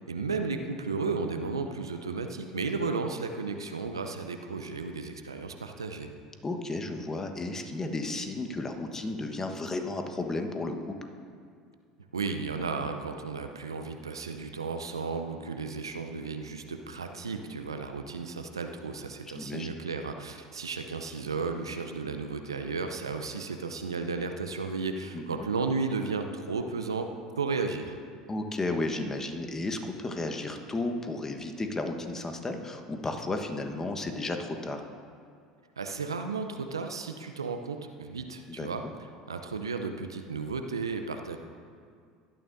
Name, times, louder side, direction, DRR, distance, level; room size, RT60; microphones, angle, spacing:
voice 1, 0.1-6.1 12.1-27.1 27.4-28.0 35.8-38.8 39.3-41.4, right 4 dB, 85° right, 6 dB, 0.6 m, -34 dB
voice 2, 6.4-10.9 19.3-19.7 25.1-25.4 28.3-34.8 38.5-38.9, left 2 dB, 20° left, 5 dB, 1.3 m, -33 dB
17.5 x 12.5 x 2.7 m, 2.2 s
figure-of-eight pair, 70°, 2 cm